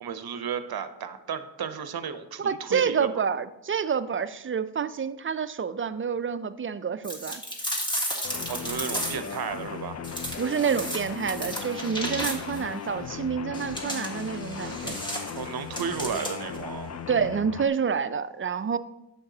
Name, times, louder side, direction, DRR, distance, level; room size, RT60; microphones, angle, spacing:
voice 1, 0.0-3.1 8.5-10.0 15.3-16.9, right 7 dB, 55° right, 10 dB, 0.7 m, -33 dB
voice 2, 2.4-7.4 10.4-15.0 17.1-18.8, right 6 dB, 30° right, 13 dB, 0.4 m, -28 dB
sound 1, 7.0-9.4 10.0-12.7 13.5-16.6, equal, 10° left, 1.5 m, -34 dB
sound 2, 8.2-17.7, left 7 dB, 35° left, 0.5 m, -37 dB
8.6 x 6.7 x 2.8 m, 0.89 s
cardioid pair, 60°, 44 cm